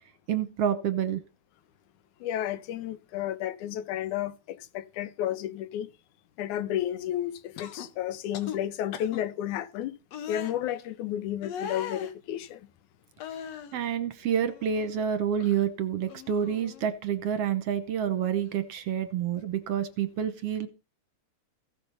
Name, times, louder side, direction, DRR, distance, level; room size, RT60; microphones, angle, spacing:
voice 1, 0.3-1.2 13.7-20.7, right 8 dB, 65° right, 1.8 m, -28 dB
voice 2, 2.2-5.9 6.4-9.9 10.3-12.7, left 11 dB, 85° left, 2.4 m, -32 dB
sound 1, 7.6-7.9 8.3-8.6 8.9-9.2 10.1-10.5 11.4-12.1 13.2-13.8 14.3-15.1 15.4-15.7 16.1-16.9 18.1-18.3, left 8 dB, 65° left, 2.2 m, -39 dB
15.5 x 6.9 x 5.5 m
omnidirectional pair, 3.4 m